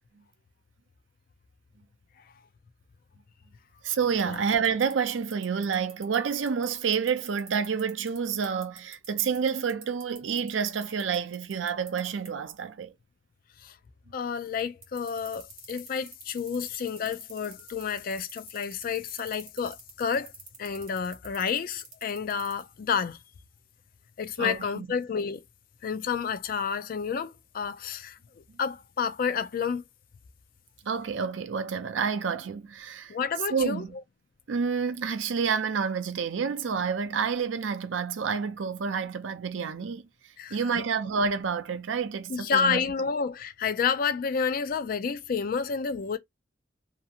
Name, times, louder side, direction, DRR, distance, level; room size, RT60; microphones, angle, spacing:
voice 1, 3.8-12.9 24.4-24.9 30.8-33.2 33.5-33.9 34.5-42.8, right 6 dB, 80° right, 0.5 m, -29 dB
sound 1, 4.2-12.0 12.2-12.3 14.8-22.6, right 6 dB, 35° right, 1.2 m, -45 dB
voice 2, 14.1-20.3 20.6-23.2 24.2-25.4 25.8-28.2 28.6-29.8 33.1-33.8 40.4-40.8 42.3-46.2, left 6 dB, 50° left, 0.4 m, -30 dB
2.7 x 2.7 x 2.4 m
head